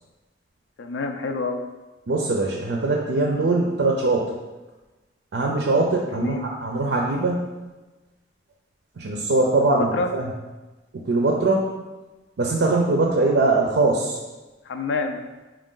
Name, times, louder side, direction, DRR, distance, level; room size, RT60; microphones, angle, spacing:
voice 1, 0.8-1.6 6.1-6.5 9.8-10.1 14.6-15.2, left 3 dB, 85° left, 5 dB, 0.4 m, -27 dB
voice 2, 2.1-4.3 5.3-7.6 9.0-10.3 11.0-11.6 12.4-14.2, right 2 dB, 85° right, -1 dB, 0.5 m, -22 dB
4.6 x 2.5 x 3.7 m, 1.1 s
head